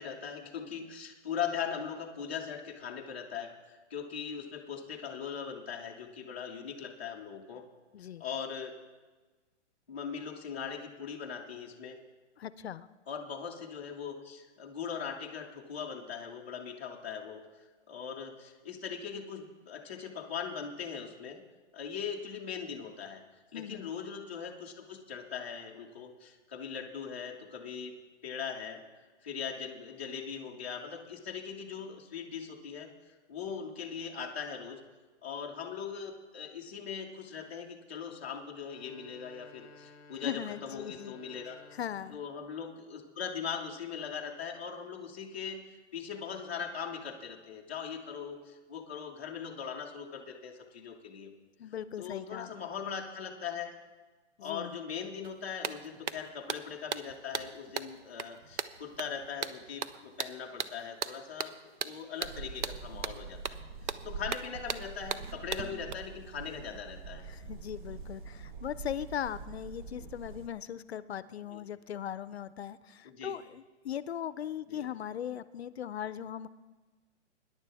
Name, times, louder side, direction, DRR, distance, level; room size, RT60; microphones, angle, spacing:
voice 1, 0.0-7.6 8.2-8.8 9.9-12.0 13.1-17.4 17.9-21.4 21.7-23.2 23.5-27.9 28.2-28.8 29.2-34.8 35.2-41.6 42.1-45.6 45.9-51.3 52.0-53.7 54.4-63.6 64.0-67.3 70.0-70.1 71.5-71.6 73.0-73.3 74.7-74.9, left 7 dB, 10° left, -8 dB, 0.4 m, -40 dB
voice 2, 7.9-8.2 12.4-12.9 23.5-23.9 40.2-41.2 41.7-42.2 51.6-52.7 54.4-54.8 67.3-76.5, left 9 dB, 60° left, 16 dB, 0.5 m, -39 dB
sound 1, 38.5-42.6, left 4 dB, 30° left, 0.8 m, -55 dB
sound 2, 55.2-55.3 55.6-65.9, right 7 dB, 75° right, 0.8 m, -38 dB
sound 3, 62.2-70.5, right 4 dB, 45° right, 0.8 m, -45 dB
21.5 x 10.5 x 3.4 m, 1.3 s
hypercardioid pair, 175°, 36 cm